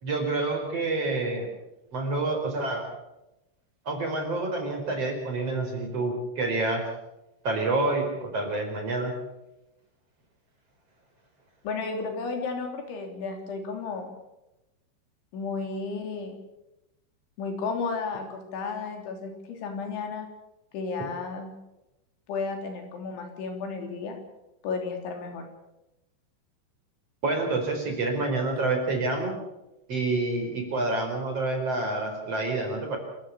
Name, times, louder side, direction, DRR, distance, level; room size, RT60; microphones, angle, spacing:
voice 1, 0.0-1.5 1.9-2.8 3.8-6.8 7.4-9.1 27.2-29.3 29.9-33.0, right 2 dB, 35° right, 3 dB, 5.1 m, -28 dB
voice 2, 11.6-14.1 15.3-16.3 17.4-20.3 20.7-21.5 22.3-24.2 24.6-25.5, left 4 dB, 85° left, 4 dB, 5.6 m, -33 dB
28.0 x 14.5 x 7.0 m, 0.93 s
omnidirectional pair, 5.3 m